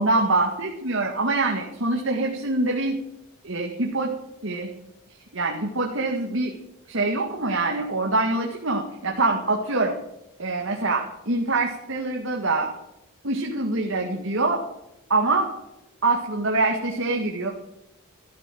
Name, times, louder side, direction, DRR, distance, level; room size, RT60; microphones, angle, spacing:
voice 1, 0.0-3.0 3.4-4.1 4.4-4.7 5.3-6.5 6.9-9.9 10.4-12.7 13.2-14.6 15.1-15.5 16.0-17.5, right 2 dB, 60° right, 0 dB, 1.9 m, -24 dB
13.5 x 12.5 x 7.7 m, 0.89 s
head